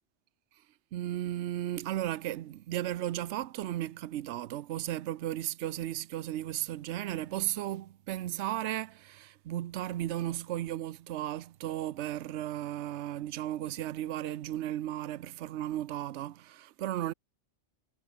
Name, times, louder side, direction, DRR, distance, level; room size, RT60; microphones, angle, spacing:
voice 1, 0.9-17.1, right 13 dB, 75° right, 0.9 m, -35 dB
omnidirectional pair, 1.2 m